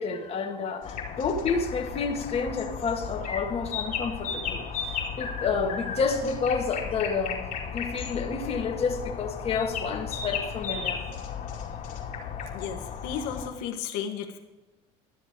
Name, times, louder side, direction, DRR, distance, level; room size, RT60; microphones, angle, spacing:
voice 1, 0.0-7.4 7.7-11.0, left 5 dB, 40° left, 2 dB, 1.8 m, -29 dB
sound 1, 0.8-13.5, left 6 dB, 60° left, 2.5 m, -35 dB
voice 2, 12.5-14.4, left 8 dB, 85° left, 4 dB, 1.3 m, -34 dB
12.5 x 7.8 x 5.0 m, 1.1 s
supercardioid pair, 90°, 15 cm